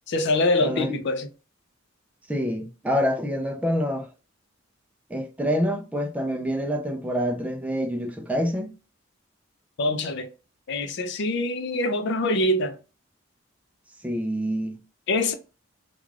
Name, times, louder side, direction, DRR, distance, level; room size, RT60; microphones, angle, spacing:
voice 1, 0.1-1.3 9.8-10.3 10.7-12.8 15.1-15.3, left 2 dB, 60° left, 0.5 m, -24 dB
voice 2, 0.6-0.9 2.3-4.1 5.1-8.7 14.0-14.8, equal, 5° right, 0.3 m, -26 dB
2.4 x 2.3 x 3.1 m
head